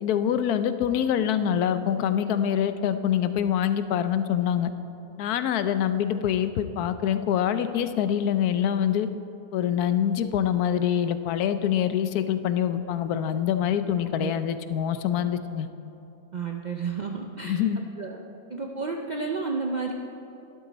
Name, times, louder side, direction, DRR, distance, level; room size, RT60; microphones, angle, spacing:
voice 1, 0.0-4.7 5.2-9.1 9.5-15.7 17.4-17.8, left 9 dB, 80° left, 11 dB, 1.1 m, -25 dB
voice 2, 16.3-17.6 18.0-18.2 18.5-19.9, right 4 dB, 80° right, 2 dB, 0.4 m, -31 dB
12.0 x 12.0 x 4.0 m, 2.8 s
omnidirectional pair, 1.6 m